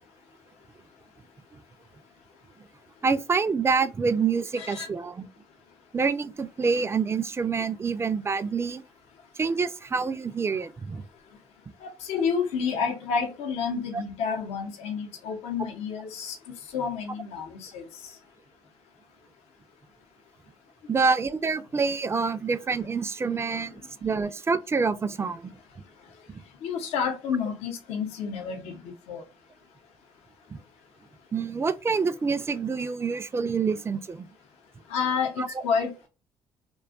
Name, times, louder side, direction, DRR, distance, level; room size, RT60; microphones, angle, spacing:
voice 1, 3.0-5.3 5.9-8.8 9.4-11.0 20.9-23.7 24.0-25.6 26.3-26.4 30.5-30.6 31.3-34.3 35.4-35.6, right 5 dB, 25° right, 0.3 m, -27 dB
voice 2, 4.6-4.9 11.8-16.4 16.7-17.8 26.6-28.8 29.1-29.2 34.9-36.1, left 6 dB, 75° left, 0.6 m, -29 dB
2.5 x 2.3 x 2.3 m
supercardioid pair, 65°, 11 cm